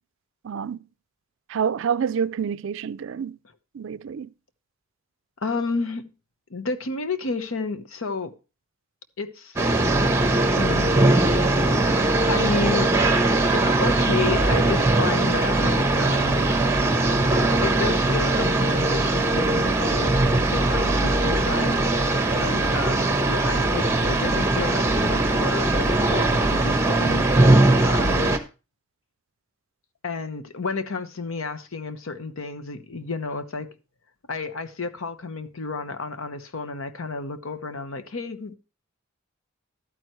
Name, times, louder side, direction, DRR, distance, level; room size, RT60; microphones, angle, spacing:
voice 1, 0.4-0.8 1.5-3.4 3.7-4.3, right 7 dB, 65° right, 0.4 m, -27 dB
voice 2, 5.4-6.1 6.5-8.3 9.2-9.6 10.6-11.2 12.3-12.9 13.5-16.4 17.6-20.2 20.5-27.3 27.8-28.4 30.0-33.8 34.3-38.6, left 4 dB, 75° left, 1.0 m, -31 dB
sound 1, 9.6-28.4, right 2 dB, 15° right, 1.1 m, -20 dB
11.5 x 9.1 x 3.1 m
head